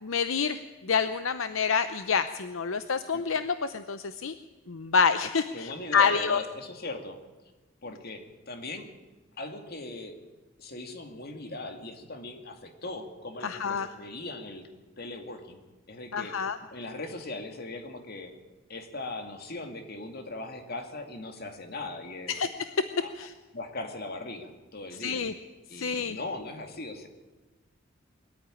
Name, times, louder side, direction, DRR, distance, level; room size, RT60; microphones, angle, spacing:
voice 1, 0.0-4.3 4.7-6.4 13.4-13.9 16.1-16.6 22.3-22.8 23.2-23.3 25.0-25.3 25.7-26.2, left 5 dB, 75° left, 11 dB, 0.7 m, -27 dB
voice 2, 5.5-7.2 7.8-8.9 9.4-10.2 10.6-14.7 15.0-15.6 15.9-16.3 16.7-18.3 18.7-22.4 23.0-23.1 23.5-25.2 25.7-27.1, left 2 dB, 50° left, 5 dB, 2.5 m, -39 dB
21.5 x 14.0 x 10.0 m, 1.2 s
head